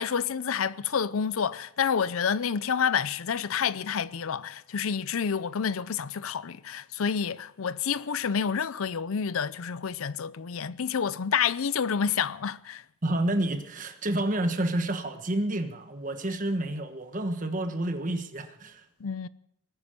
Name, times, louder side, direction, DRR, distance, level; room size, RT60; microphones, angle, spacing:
voice 1, 0.0-12.8 19.0-19.3, left 7 dB, 75° left, 0.5 m, -29 dB
voice 2, 13.0-18.8, right 1 dB, 40° right, 1.3 m, -29 dB
20.0 x 9.5 x 6.7 m
head